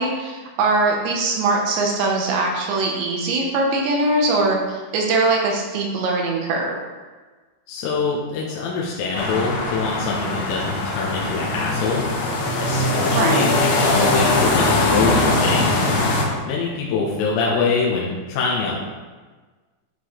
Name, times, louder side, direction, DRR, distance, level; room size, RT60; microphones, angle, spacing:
voice 1, 0.0-6.8 13.1-13.5, right 2 dB, 75° right, 0 dB, 3.1 m, -21 dB
voice 2, 7.7-12.1 12.6-15.8 16.4-18.8, left 4 dB, 85° left, -4 dB, 3.6 m, -24 dB
sound 1, 9.1-16.3, left 2 dB, 70° left, 3.8 m, -21 dB
12.5 x 6.1 x 3.3 m, 1.3 s
omnidirectional pair, 5.7 m